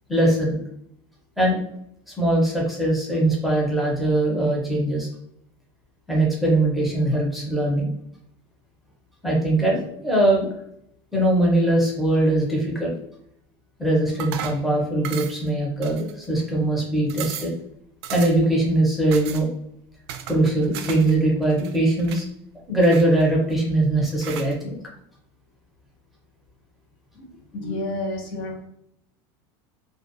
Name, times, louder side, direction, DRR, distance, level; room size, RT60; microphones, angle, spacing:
voice 1, 0.1-0.6 1.4-1.6 2.1-5.1 6.1-7.9 9.2-10.5 11.1-12.9 13.8-17.5 18.1-19.5 20.3-22.2 22.7-24.8, right 1 dB, ahead, -4 dB, 0.7 m, -21 dB
sound 1, 14.2-14.7 15.0-15.5 15.8-16.4 16.8-16.9 17.1-17.6 18.0-18.5 19.1-19.5 20.1-21.2 21.4-22.3 22.8-23.5 24.2-24.5, right 9 dB, 80° right, 0.4 m, -36 dB
voice 2, 27.5-28.6, left 2 dB, 40° left, 0 dB, 0.6 m, -29 dB
2.3 x 2.2 x 2.5 m, 0.72 s
supercardioid pair, 160°, 13 cm